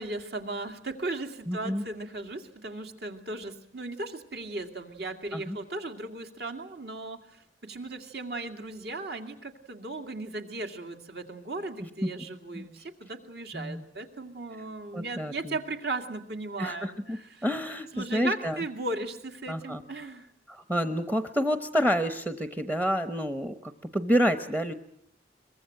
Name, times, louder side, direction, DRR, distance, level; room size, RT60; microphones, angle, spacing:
voice 1, 0.0-17.4 17.9-20.3, right 2 dB, 65° right, 6 dB, 2.4 m, -37 dB
voice 2, 1.5-1.8 5.3-5.6 11.8-12.1 12.5-12.7 13.5-13.8 14.9-15.5 16.6-18.6 19.5-19.8 20.5-24.7, equal, 15° right, 9 dB, 0.9 m, -29 dB
23.5 x 21.5 x 7.8 m, 0.69 s
head